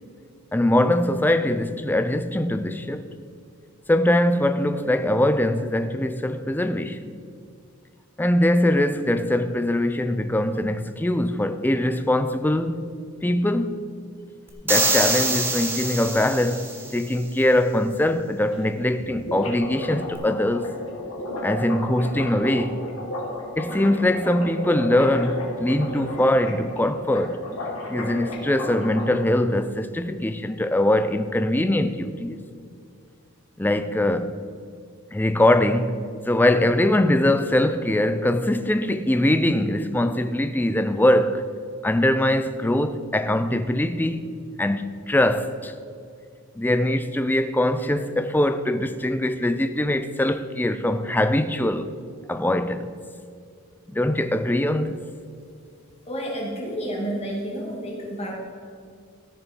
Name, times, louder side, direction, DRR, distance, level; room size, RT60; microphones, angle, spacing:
voice 1, 0.5-3.1 3.9-7.1 8.2-12.9 13.2-13.8 14.6-16.6 16.9-20.7 21.4-22.8 23.6-27.4 27.9-32.4 33.6-34.4 35.1-41.5 41.8-44.3 44.6-45.7 46.6-51.9 52.3-52.9 53.9-55.0, left 1 dB, 10° left, 0.4 m, -22 dB
sound 1, 14.7-17.0, right 2 dB, 10° right, 1.2 m, -24 dB
sound 2, 18.2-18.3 18.5-18.6 18.9-29.1, left 1 dB, 70° left, 2.4 m, -33 dB
voice 2, 56.1-58.3, equal, 30° left, 2.3 m, -30 dB
14.0 x 6.7 x 4.4 m
head